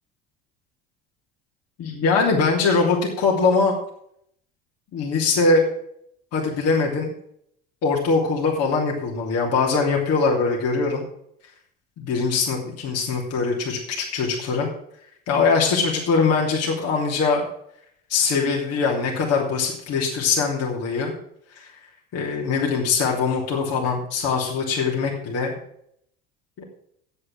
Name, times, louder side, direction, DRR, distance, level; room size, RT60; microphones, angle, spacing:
voice 1, 1.8-3.7 4.9-5.6 6.3-7.1 7.8-11.0 12.0-14.7 15.3-17.4 18.1-21.1 21.6-21.7 22.1-25.5 26.6-26.7, left 4 dB, 55° left, -2 dB, 2.9 m, -22 dB
9.7 x 8.5 x 6.1 m, 0.70 s
hypercardioid pair, 70°, 30 cm